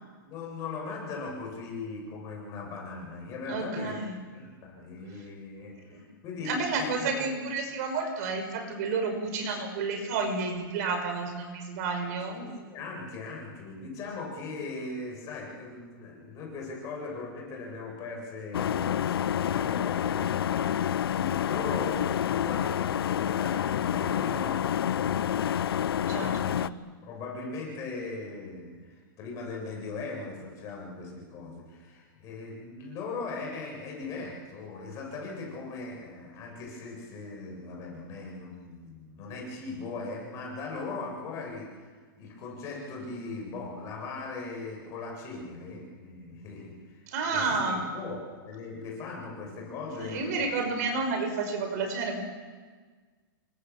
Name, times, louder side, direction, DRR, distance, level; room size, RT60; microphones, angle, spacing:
voice 1, 0.2-3.9 4.3-7.3 12.3-26.5 27.0-50.5, left 3 dB, 25° left, -1 dB, 7.7 m, -39 dB
voice 2, 3.5-4.1 5.9-6.0 6.5-12.4 26.1-26.8 47.1-47.8 50.0-52.2, right 4 dB, 45° right, 6 dB, 5.7 m, -31 dB
sound 1, 18.5-26.7, left 9 dB, 85° left, 0.8 m, -28 dB
29.0 x 24.0 x 7.5 m, 1.5 s
hypercardioid pair, 165°, 12 cm